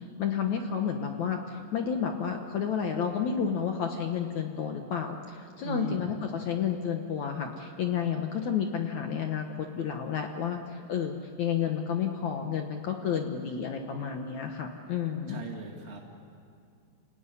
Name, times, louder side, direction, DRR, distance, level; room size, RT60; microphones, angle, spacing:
voice 1, 0.2-15.4, left 7 dB, 75° left, 4 dB, 1.7 m, -31 dB
voice 2, 5.6-6.1 15.3-16.0, right 2 dB, 40° right, 0 dB, 0.9 m, -38 dB
28.5 x 17.0 x 9.9 m, 2.3 s
omnidirectional pair, 5.1 m